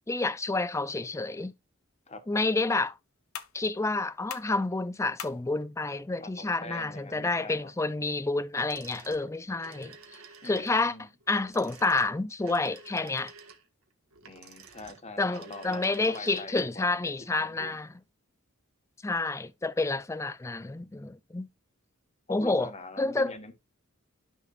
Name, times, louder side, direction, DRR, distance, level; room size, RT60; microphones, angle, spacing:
voice 1, 0.1-1.5 2.3-3.0 3.5-9.9 10.4-13.3 15.2-17.9 19.0-21.5 22.3-23.3, left 3 dB, 15° left, 0.4 m, -29 dB
sound 1, 1.8-8.8, left 8 dB, 85° left, 1.1 m, -49 dB
voice 2, 6.2-7.7 10.4-11.1 14.3-17.7 22.3-23.5, left 2 dB, 30° left, 1.4 m, -44 dB
sound 2, 8.6-16.7, right 5 dB, 90° right, 1.7 m, -51 dB
12.0 x 6.3 x 2.5 m
head